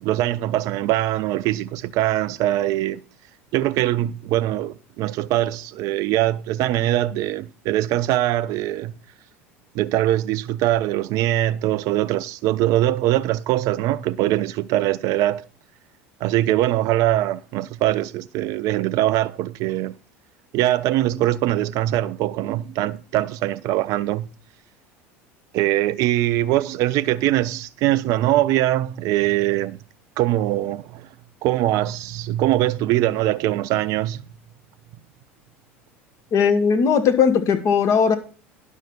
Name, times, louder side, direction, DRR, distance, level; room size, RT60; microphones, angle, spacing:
voice 1, 0.0-3.0 3.5-8.9 9.7-15.5 16.2-19.9 20.5-24.3 25.5-29.8 30.2-31.1 31.4-34.2, right 14 dB, 55° right, 0.6 m, -22 dB
voice 2, 36.3-38.1, left 6 dB, 45° left, 1.4 m, -18 dB
10.5 x 6.3 x 5.5 m
hypercardioid pair, 75°, 7 cm